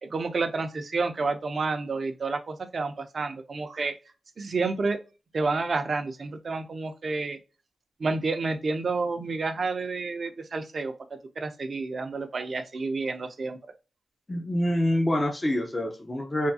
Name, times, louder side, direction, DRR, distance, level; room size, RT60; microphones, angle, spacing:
voice 1, 0.0-3.9 4.4-5.0 5.3-7.4 8.0-10.9 11.4-13.6, right 3 dB, 60° right, 7 dB, 0.5 m, -29 dB
voice 2, 14.3-16.5, left 1 dB, 25° left, 3 dB, 0.6 m, -26 dB
3.4 x 2.2 x 2.7 m, 0.31 s
cardioid pair, 65°, 0 cm